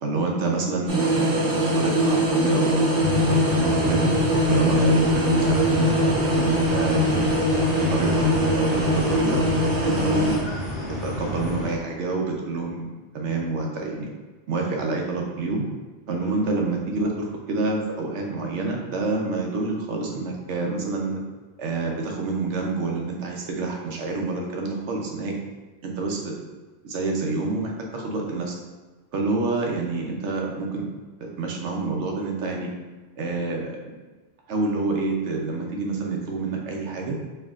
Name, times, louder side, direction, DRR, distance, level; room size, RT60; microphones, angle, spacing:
voice 1, 0.0-4.1 4.5-7.4 7.8-9.5 9.8-10.5 11.0-12.9 13.1-14.1 14.5-15.6 16.1-21.2 21.6-25.4 25.8-26.4 26.8-28.5 29.1-30.9 31.2-32.7 33.2-33.8 34.5-37.2, right 3 dB, 80° right, 0 dB, 1.0 m, -27 dB
sound 1, 0.9-10.4, equal, 55° right, 1.1 m, -22 dB
sound 2, 3.0-11.7, left 1 dB, 85° left, 1.7 m, -30 dB
4.4 x 3.3 x 2.4 m, 1.3 s
omnidirectional pair, 1.2 m